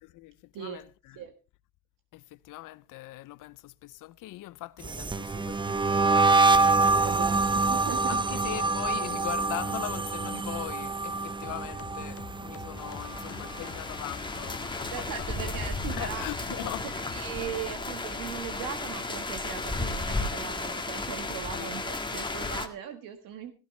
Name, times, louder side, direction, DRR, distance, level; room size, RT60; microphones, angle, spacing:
voice 1, 0.0-1.2 2.1-6.4 7.3-7.4 8.1-15.3 15.9-16.9 21.5-22.0, left 17 dB, 70° left, 0.7 m, -40 dB
sound 1, 4.8-14.0 14.3-14.7 15.0-16.6, right 3 dB, 15° right, 0.7 m, -26 dB
voice 2, 6.9-8.2 14.9-16.7 17.1-23.5, right 9 dB, 75° right, 1.6 m, -39 dB
sound 2, 11.4-17.4, left 8 dB, 45° left, 1.1 m, -46 dB
sound 3, 12.8-22.7, left 3 dB, 15° left, 1.7 m, -34 dB
16.5 x 13.5 x 3.2 m
cardioid pair, 90°, 33 cm